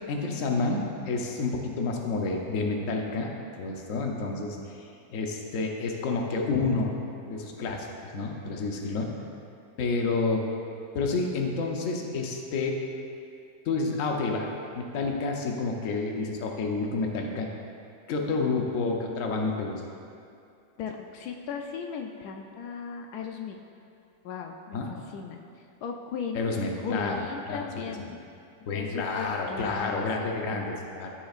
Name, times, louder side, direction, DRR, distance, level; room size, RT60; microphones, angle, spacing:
voice 1, 0.1-6.9 7.3-9.1 9.8-10.5 10.9-12.8 13.6-14.5 14.7-17.5 18.1-19.7 24.7-24.9 26.3-27.2 27.5-27.8 28.6-31.1, left 3 dB, 60° left, 1 dB, 1.2 m, -29 dB
voice 2, 20.8-23.6 24.2-25.4 25.8-26.4 26.8-28.2 28.7-30.1 30.5-30.7, left 6 dB, 85° left, 3 dB, 1.1 m, -37 dB
14.0 x 6.2 x 2.4 m, 2.5 s
omnidirectional pair, 1.6 m